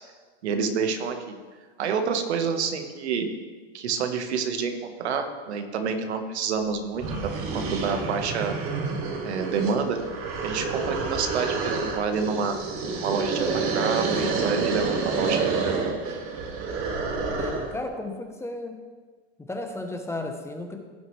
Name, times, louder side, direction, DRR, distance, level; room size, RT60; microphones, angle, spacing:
voice 1, 0.4-1.4 1.8-3.3 3.7-8.5 9.2-10.0 10.4-12.6 12.9-13.5 13.7-15.7, right 6 dB, 85° right, 6 dB, 1.3 m, -28 dB
sound 1, 6.6-6.7 7.0-17.8, right 4 dB, 45° right, 1.9 m, -28 dB
voice 2, 17.4-18.8 19.4-20.8, left 2 dB, 10° left, 5 dB, 0.9 m, -34 dB
16.5 x 6.1 x 3.2 m, 1.4 s
supercardioid pair, 125°, 32 cm